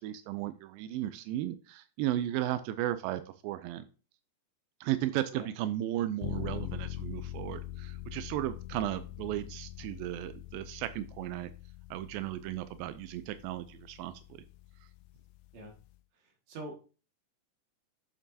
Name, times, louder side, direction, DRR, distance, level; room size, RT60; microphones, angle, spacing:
voice 1, 0.0-3.9 4.8-11.5 11.9-14.1, right 13 dB, 90° right, 11 dB, 2.3 m, -35 dB
sound 1, 6.2-16.0, left 14 dB, 80° left, 2.2 m, -43 dB
voice 2, 16.1-16.8, right 1 dB, 55° right, 1 dB, 2.9 m, -44 dB
8.8 x 6.7 x 2.7 m, 0.35 s
omnidirectional pair, 4.0 m